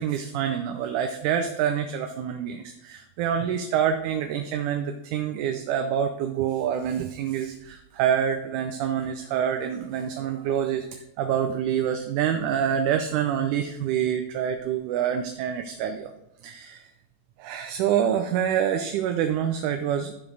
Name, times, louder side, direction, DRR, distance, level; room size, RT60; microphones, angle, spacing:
voice 1, 0.0-16.1 16.4-16.9 17.4-20.1, right 9 dB, 80° right, 6 dB, 2.0 m, -26 dB
11.5 x 5.3 x 3.9 m, 0.90 s
omnidirectional pair, 3.8 m